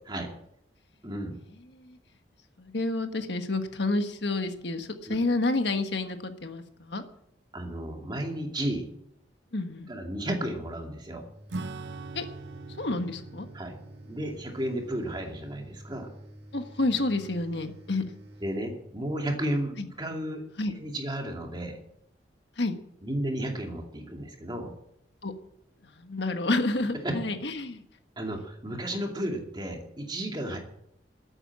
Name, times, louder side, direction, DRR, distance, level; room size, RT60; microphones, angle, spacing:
voice 1, 1.0-1.4 5.1-5.2 7.5-8.9 9.9-11.2 13.5-13.7 14.1-16.1 18.4-20.4 20.7-21.8 23.0-24.7 27.0-27.1 28.2-30.6, right 1 dB, 25° right, 2 dB, 2.5 m, -33 dB
voice 2, 2.6-7.0 9.5-9.9 12.1-12.3 12.8-13.5 16.5-18.0 19.8-19.9 20.6-20.7 22.6-22.8 25.2-25.3 26.0-27.8, left 2 dB, 75° left, 7 dB, 1.4 m, -29 dB
sound 1, 11.0-18.6, equal, 65° right, 1.9 m, -49 dB
Acoustic guitar / Strum, 11.5-17.4, right 3 dB, 85° right, 0.7 m, -44 dB
13.0 x 9.0 x 7.6 m, 0.75 s
head